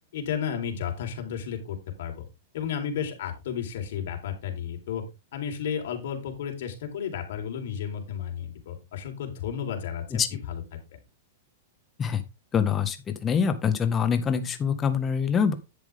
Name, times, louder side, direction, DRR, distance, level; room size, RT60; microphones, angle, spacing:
voice 1, 0.1-2.3 2.5-5.0 5.3-10.8, left 8 dB, 70° left, 3 dB, 4.1 m, -33 dB
voice 2, 12.5-13.0 13.2-15.5, left 7 dB, 20° left, 9 dB, 1.6 m, -24 dB
10.5 x 8.1 x 3.6 m, 0.25 s
hypercardioid pair, 145°, 0 cm